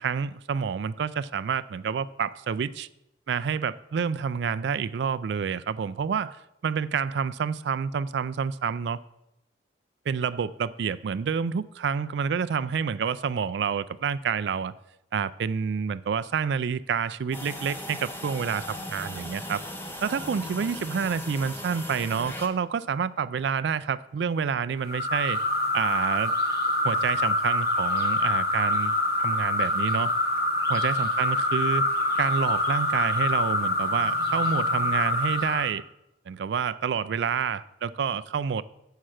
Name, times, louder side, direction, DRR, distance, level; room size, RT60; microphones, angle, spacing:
voice 1, 0.0-2.9 3.3-6.4 6.6-9.0 10.1-14.7 15.1-19.6 20.0-25.4 25.7-26.3 26.8-30.1 30.7-31.9 32.2-35.8 36.3-38.6, right 6 dB, 65° right, 0.3 m, -28 dB
sound 1, 17.3-22.5, left 1 dB, 10° left, 0.7 m, -38 dB
sound 2, 24.9-35.7, left 1 dB, 55° left, 0.9 m, -25 dB
7.5 x 5.6 x 6.3 m
head